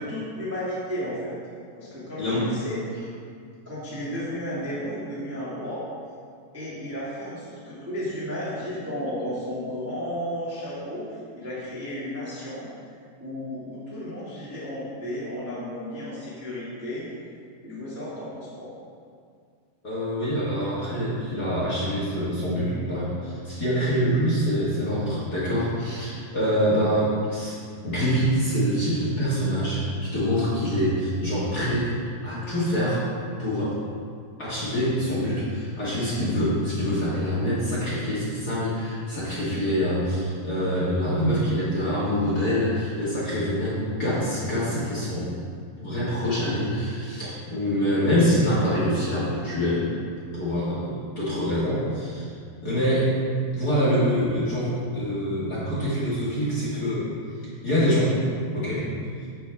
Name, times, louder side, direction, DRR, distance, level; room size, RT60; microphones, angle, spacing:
voice 1, 0.0-1.3 1.8-2.9 3.6-5.8 6.5-11.1 11.3-12.7 13.2-17.1 17.6-18.7, equal, 5° right, -9 dB, 1.1 m, -33 dB
voice 2, 19.8-27.6 27.8-31.9 32.2-33.0 33.4-33.7 34.4-45.3 45.8-49.9 50.3-52.3 52.6-53.1 53.5-57.1 57.6-58.1 58.5-58.8, equal, 35° left, -9 dB, 2.0 m, -25 dB
10.0 x 7.8 x 3.6 m, 2.2 s
omnidirectional pair, 4.2 m